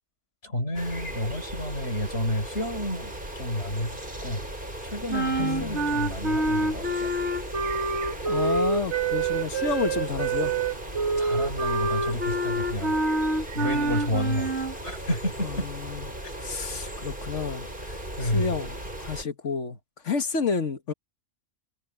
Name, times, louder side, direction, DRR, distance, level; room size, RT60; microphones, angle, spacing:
voice 1, 0.4-4.4 4.8-7.1 11.2-13.0 13.5-15.7 16.2-16.3 18.2-18.6, left 1 dB, 70° left, 6.4 m, -30 dB
sound 1, 0.7-19.2, right 1 dB, 45° right, 8.0 m, -37 dB
sound 2, 5.1-14.7, right 3 dB, 75° right, 2.5 m, -27 dB
voice 2, 5.4-5.9 8.3-10.6 15.4-19.8 20.0-20.9, left 5 dB, 90° left, 1.9 m, -30 dB
omnidirectional pair, 1.2 m